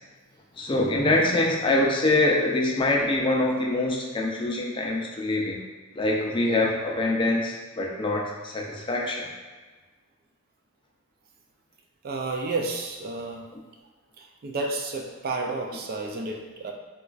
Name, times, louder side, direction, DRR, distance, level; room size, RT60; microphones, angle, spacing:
voice 1, 0.6-5.6 6.0-9.3, left 2 dB, 25° left, -2 dB, 0.4 m, -24 dB
voice 2, 12.0-13.4 14.2-16.7, right 3 dB, 45° right, 2 dB, 0.3 m, -31 dB
4.1 x 2.3 x 2.4 m, 1.3 s
head